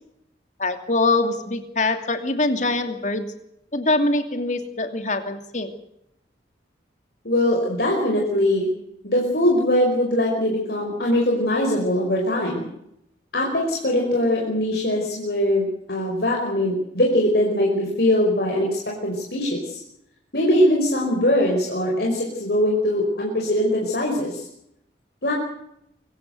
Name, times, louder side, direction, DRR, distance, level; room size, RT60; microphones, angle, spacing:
voice 1, 0.6-3.3 3.7-5.7, left 2 dB, 40° left, 8 dB, 2.7 m, -23 dB
voice 2, 7.2-8.7 9.0-12.7 13.3-19.8 20.3-24.5 25.2-25.3, left 1 dB, 60° left, -1 dB, 5.3 m, -21 dB
24.5 x 15.5 x 7.9 m, 0.78 s
head